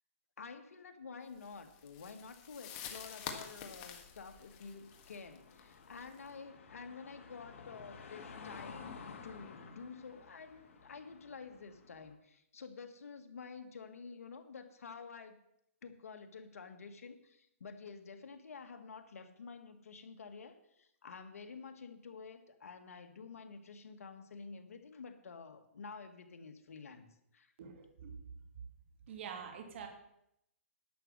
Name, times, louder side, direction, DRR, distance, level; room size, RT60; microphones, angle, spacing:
voice 1, 0.4-15.4 15.8-27.1 27.3-27.5, left 5 dB, 80° left, 7 dB, 1.6 m, -50 dB
sound 1, 1.4-6.3, left 8 dB, 30° left, 1.4 m, -48 dB
sound 2, 3.6-12.1, left 5 dB, 65° left, 1.9 m, -53 dB
voice 2, 27.6-28.2 29.1-29.9, right 7 dB, 50° right, 4 dB, 2.3 m, -46 dB
11.0 x 6.5 x 7.5 m, 0.78 s
hypercardioid pair, 150°, 8 cm